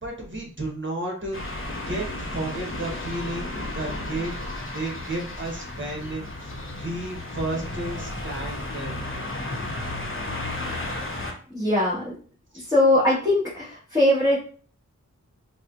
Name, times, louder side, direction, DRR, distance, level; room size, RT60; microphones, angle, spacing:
voice 1, 0.0-1.4 1.9-3.5 3.7-4.4 4.7-6.2 6.8-9.0 12.5-12.6, right 2 dB, 35° right, 0 dB, 1.1 m, -32 dB
sound 1, 1.3-11.3, left 2 dB, 40° left, 0.9 m, -33 dB
voice 2, 11.5-12.0 12.7-14.4, left 1 dB, 10° right, -10 dB, 1.6 m, -21 dB
4.1 x 2.2 x 2.6 m, 0.43 s
cardioid pair, 40°, 32 cm